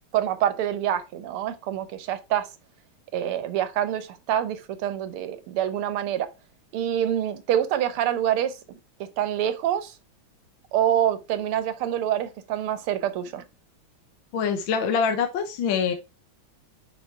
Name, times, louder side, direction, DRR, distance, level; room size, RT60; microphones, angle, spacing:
voice 1, 0.1-2.5 3.1-6.3 6.7-8.5 9.2-9.9 10.7-13.4, right 10 dB, 90° right, 1.8 m, -26 dB
voice 2, 14.3-15.9, left 6 dB, 70° left, 1.7 m, -24 dB
6.5 x 5.4 x 4.5 m
omnidirectional pair, 2.3 m